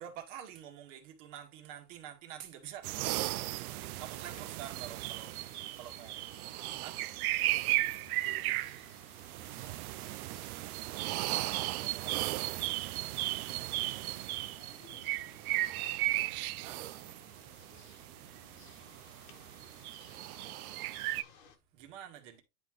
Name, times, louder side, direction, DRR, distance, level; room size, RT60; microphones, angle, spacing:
voice 1, 0.0-2.9 4.0-5.3 5.8-7.0 11.3-12.3 16.6-16.8 21.7-22.4, right 10 dB, 50° right, 1.7 m, -48 dB
sound 1, 2.8-21.2, right 17 dB, 65° right, 0.5 m, -36 dB
sound 2, 3.3-21.6, left 6 dB, 40° left, 1.3 m, -59 dB
voice 2, 4.0-4.4 4.7-4.9 5.2-6.0 7.8-8.1 8.8-8.9 9.3-9.8 17.8-18.5, left 1 dB, 5° left, 0.7 m, -66 dB
10.0 x 3.9 x 3.1 m
supercardioid pair, 170°, 48 cm